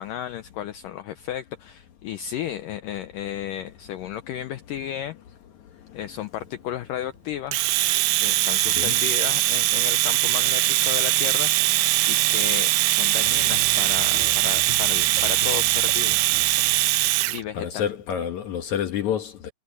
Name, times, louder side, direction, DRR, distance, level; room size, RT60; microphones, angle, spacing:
voice 1, 0.0-5.2 5.9-7.6 8.2-11.8 12.1-16.2 17.3-17.9, left 11 dB, 90° left, 1.9 m, -34 dB
voice 2, 5.6-6.0 8.7-9.0 17.5-19.5, left 9 dB, 65° left, 2.0 m, -29 dB
Domestic sounds home sounds, 7.5-17.4, right 17 dB, 80° right, 2.8 m, -21 dB
Musical instrument, 13.2-18.0, right 3 dB, 55° right, 4.8 m, -41 dB
omnidirectional pair, 4.8 m